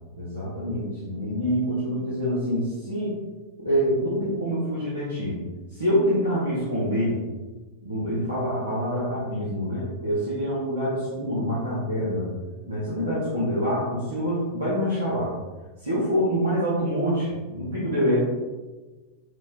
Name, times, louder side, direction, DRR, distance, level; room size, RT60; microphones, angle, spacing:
voice 1, 0.1-3.1 3.6-5.4 5.7-7.2 7.8-12.3 12.7-15.3 15.8-18.2, equal, 80° right, -9 dB, 0.7 m, -26 dB
4.0 x 2.1 x 2.3 m, 1.2 s
figure-of-eight pair, 90°, 0 cm